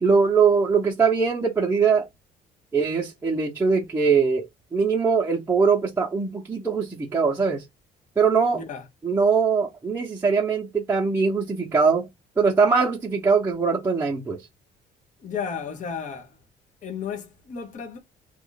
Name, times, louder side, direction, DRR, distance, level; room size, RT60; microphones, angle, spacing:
voice 1, 0.0-2.1 2.7-4.5 4.7-7.6 8.2-8.6 9.0-12.1 12.4-14.4, right 5 dB, 10° right, 0.8 m, -21 dB
voice 2, 8.5-8.9 15.2-16.4 16.8-18.0, left 6 dB, 45° left, 1.0 m, -33 dB
3.0 x 2.5 x 3.9 m
cardioid pair, 110°, 17 cm